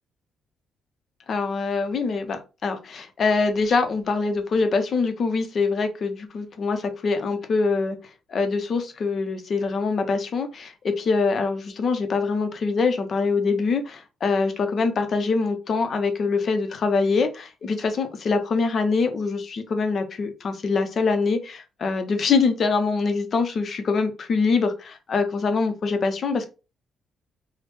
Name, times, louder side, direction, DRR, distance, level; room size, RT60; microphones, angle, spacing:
voice 1, 1.3-8.0 8.3-26.5, left 4 dB, 50° left, 7 dB, 0.6 m, -24 dB
3.1 x 2.0 x 3.1 m, 0.31 s
cardioid pair, 90°, 0 cm